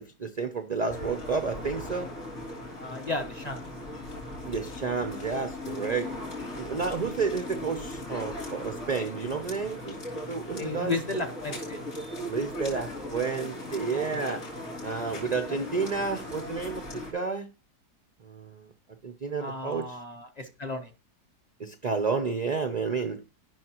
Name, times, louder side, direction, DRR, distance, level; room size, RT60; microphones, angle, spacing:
voice 1, 0.0-2.1 4.4-6.2 6.6-11.0 12.2-14.4 14.8-17.5 18.2-18.7 19.0-20.0 21.6-23.2, right 5 dB, 70° right, 0.4 m, -31 dB
sound 1, 0.9-17.1, left 1 dB, 55° left, 3.5 m, -38 dB
voice 2, 2.8-3.6 10.5-11.8 12.7-13.1 19.4-20.9, left 3 dB, 35° left, 0.8 m, -34 dB
13.5 x 5.7 x 2.9 m
omnidirectional pair, 1.7 m